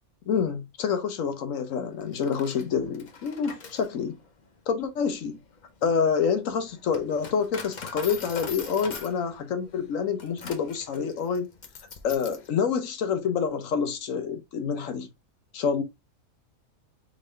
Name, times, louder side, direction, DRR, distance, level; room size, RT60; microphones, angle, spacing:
voice 1, 0.3-4.2 4.7-5.4 5.8-11.5 12.0-15.1 15.5-15.8, left 6 dB, 65° left, 1.1 m, -27 dB
Coin (dropping), 2.0-12.5, left 5 dB, 40° left, 0.7 m, -43 dB
3.9 x 3.7 x 3.2 m
omnidirectional pair, 1.5 m